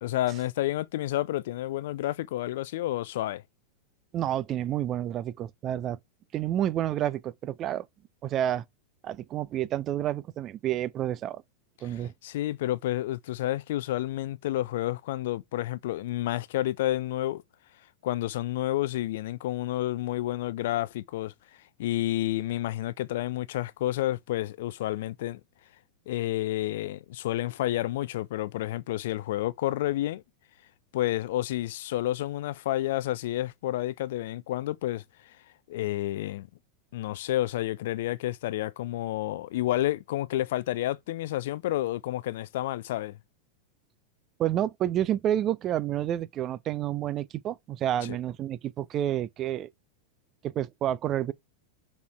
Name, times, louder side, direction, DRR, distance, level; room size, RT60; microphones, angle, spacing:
voice 1, 0.0-3.4 11.8-17.4 18.0-21.3 21.8-25.4 26.1-30.2 30.9-35.0 35.7-36.5 36.9-43.2, left 14 dB, 55° left, 0.4 m, -30 dB
voice 2, 4.1-6.0 6.3-7.9 8.2-8.6 9.0-11.4 11.8-12.1 44.4-49.7 50.4-51.3, right 11 dB, 30° right, 0.5 m, -29 dB
5.5 x 4.3 x 4.4 m
figure-of-eight pair, 90°, 0 cm